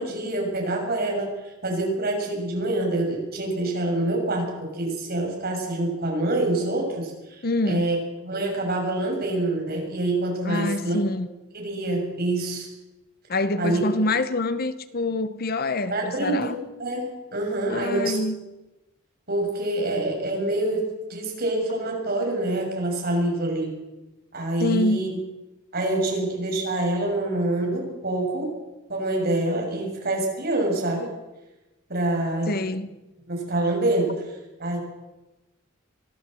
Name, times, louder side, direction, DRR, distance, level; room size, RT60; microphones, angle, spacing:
voice 1, 0.0-8.0 8.2-11.0 11.5-12.7 13.6-13.8 15.9-16.5 16.8-18.2 19.3-23.7 24.3-25.1 25.7-28.6 28.9-31.1 31.9-32.5 33.3-34.8, right 1 dB, 50° right, 6.9 m, -26 dB
voice 2, 7.4-7.9 10.4-11.3 13.3-16.6 17.7-18.4 24.6-25.0 32.5-32.9, left 2 dB, 45° left, 1.0 m, -26 dB
24.0 x 15.5 x 7.8 m
head